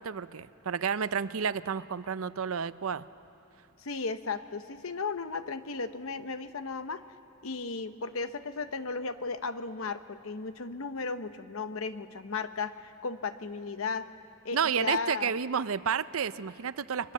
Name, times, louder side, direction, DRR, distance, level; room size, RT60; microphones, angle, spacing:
voice 1, 0.0-3.0 14.5-17.1, right 7 dB, 75° right, 15 dB, 0.6 m, -31 dB
voice 2, 3.8-7.0 7.4-14.1 14.4-15.3, left 4 dB, 75° left, 11 dB, 0.9 m, -35 dB
29.5 x 23.0 x 7.5 m, 2.8 s
head